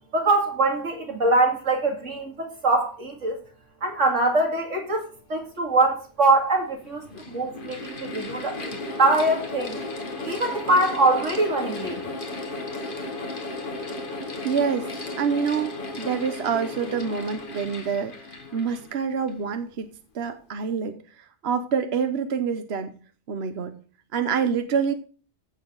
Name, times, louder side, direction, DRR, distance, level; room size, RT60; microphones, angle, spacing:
voice 1, 0.1-3.4 3.8-9.8 10.3-12.0, right 2 dB, 90° right, 2.8 m, -23 dB
Mechanical fan, 5.9-6.0 6.8-19.5, left 2 dB, 45° left, 1.8 m, -35 dB
voice 2, 14.4-14.9 15.2-19.9 20.1-22.9 23.3-23.8 24.1-24.9, right 6 dB, 60° right, 1.1 m, -27 dB
15.0 x 6.8 x 3.8 m
omnidirectional pair, 1.2 m